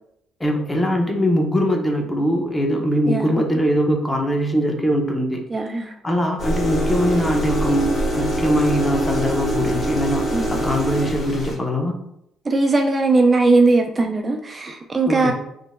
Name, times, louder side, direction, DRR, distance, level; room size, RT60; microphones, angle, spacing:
voice 1, 0.4-5.4 6.0-7.9 8.1-11.9 15.1-15.3, equal, 15° left, 2 dB, 0.6 m, -21 dB
voice 2, 3.1-3.4 5.5-5.9 10.3-10.5 12.5-15.3, right 3 dB, 30° right, 3 dB, 0.3 m, -19 dB
sound 1, 6.4-11.5, right 1 dB, 50° left, 1.3 m, -24 dB
3.6 x 2.0 x 2.5 m, 0.79 s
supercardioid pair, 75°, 0 cm